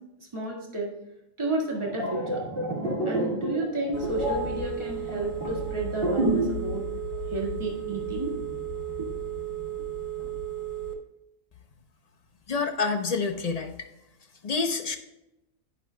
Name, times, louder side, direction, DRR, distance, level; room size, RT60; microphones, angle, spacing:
voice 1, 0.2-0.9 1.4-2.4 3.1-6.8 7.3-8.4, right 1 dB, 20° right, -3 dB, 1.9 m, -31 dB
sound 1, 1.7-6.6 6.9-7.1, right 1 dB, 40° right, 1.9 m, -29 dB
Telephone, 3.9-10.9, right 6 dB, 75° left, 1.9 m, -34 dB
voice 2, 12.5-13.9 14.4-15.0, left 4 dB, 40° left, 5 dB, 0.6 m, -28 dB
11.0 x 9.6 x 2.2 m, 0.91 s
omnidirectional pair, 1.4 m